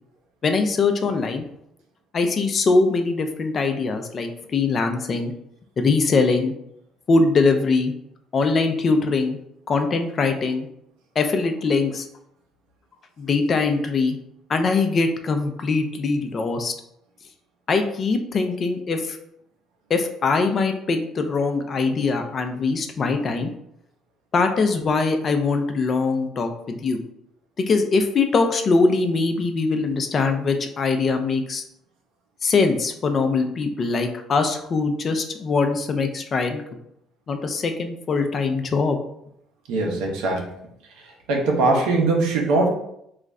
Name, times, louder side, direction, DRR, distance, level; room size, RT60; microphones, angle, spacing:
voice 1, 0.4-1.5 2.1-5.3 5.8-6.5 7.1-7.9 8.3-9.4 9.7-10.7 11.2-12.0 13.2-14.2 14.5-16.7 17.7-19.2 19.9-23.5 24.3-27.0 27.6-31.6 32.4-36.6 37.3-39.0, left 4 dB, 45° left, 6 dB, 0.4 m, -22 dB
voice 2, 39.7-40.5 41.3-42.7, right 3 dB, 80° right, 0 dB, 0.6 m, -21 dB
2.4 x 2.0 x 3.5 m, 0.76 s
supercardioid pair, 65°, 0 cm